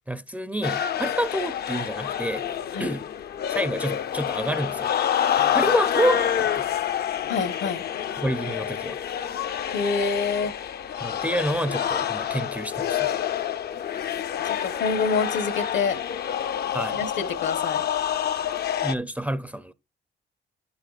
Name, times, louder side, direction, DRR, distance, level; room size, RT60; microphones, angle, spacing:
voice 1, 0.1-2.5 2.8-3.1 3.5-5.1 5.5-6.7 8.2-9.0 11.0-13.2 16.7-17.0 18.8-19.7, right 1 dB, 5° right, 0.5 m, -28 dB
sound 1, 0.6-18.9, left 9 dB, 55° left, 0.5 m, -27 dB
voice 2, 7.3-7.8 9.7-10.5 14.4-16.0 16.9-17.8, left 5 dB, 70° left, 1.1 m, -26 dB
10.5 x 6.9 x 2.4 m
cardioid pair, 90°, 20 cm